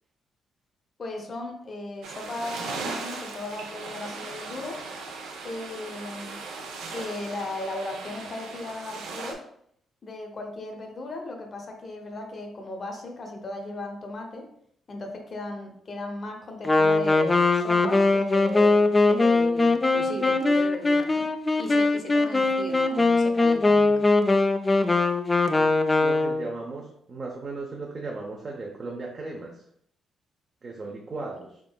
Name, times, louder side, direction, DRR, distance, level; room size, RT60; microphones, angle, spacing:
voice 1, 1.0-4.8 5.4-6.5 6.9-9.4 10.0-14.5 14.9-21.3 21.6-24.0, left 2 dB, 40° left, 3 dB, 0.8 m, -36 dB
sound 1, 2.0-9.3, right 4 dB, 90° right, 0.6 m, -38 dB
Wind instrument woodwind instrument, 16.6-26.5, left 3 dB, 20° left, 0.3 m, -21 dB
voice 2, 26.0-29.6 30.6-31.6, right 3 dB, 40° right, -1 dB, 0.6 m, -36 dB
3.6 x 3.6 x 2.2 m, 0.68 s
cardioid pair, 90°, 0 cm